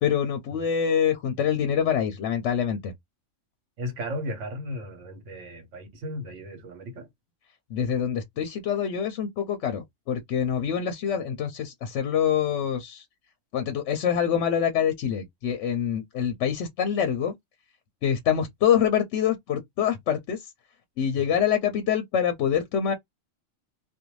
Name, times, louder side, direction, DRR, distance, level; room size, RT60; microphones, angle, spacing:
voice 1, 0.0-2.9 7.7-13.0 13.5-17.3 18.0-20.5 21.0-22.9, left 8 dB, 65° left, 0.8 m, -25 dB
voice 2, 3.8-7.1 21.2-21.4, equal, 65° right, 1.2 m, -36 dB
2.5 x 2.2 x 3.0 m
omnidirectional pair, 1.4 m